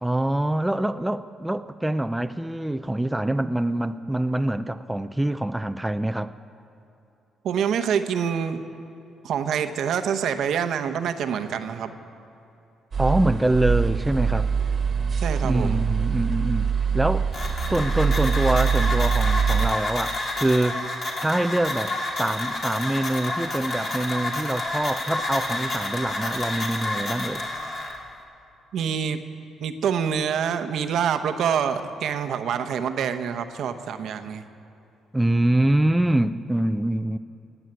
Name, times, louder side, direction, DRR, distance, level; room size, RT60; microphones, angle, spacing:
voice 1, 0.0-6.3 13.0-14.5 15.4-16.7 16.9-17.3 17.7-20.9 21.2-27.4 35.1-37.2, right 1 dB, 10° right, 10 dB, 0.4 m, -25 dB
voice 2, 7.4-8.6 9.2-11.9 15.2-15.8 28.7-29.2 29.6-34.4, right 7 dB, 70° right, 8 dB, 0.9 m, -26 dB
sound 1, 12.9-19.7, right 6 dB, 45° right, 1.4 m, -24 dB
sound 2, 17.3-28.0, left 2 dB, 50° left, 2.8 m, -29 dB
17.5 x 8.0 x 9.1 m, 2.8 s
cardioid pair, 90°, 0 cm